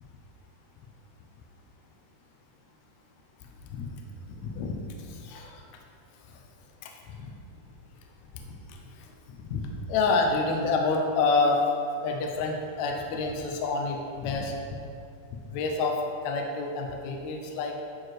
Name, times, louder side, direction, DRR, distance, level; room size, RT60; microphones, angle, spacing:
voice 1, 4.3-5.6 6.8-6.9 7.2-7.3 8.4-8.8 9.4-11.7 12.0-14.5 15.5-17.8, left 3 dB, 80° left, 1 dB, 1.7 m, -28 dB
10.5 x 4.7 x 3.2 m, 2.5 s
omnidirectional pair, 3.7 m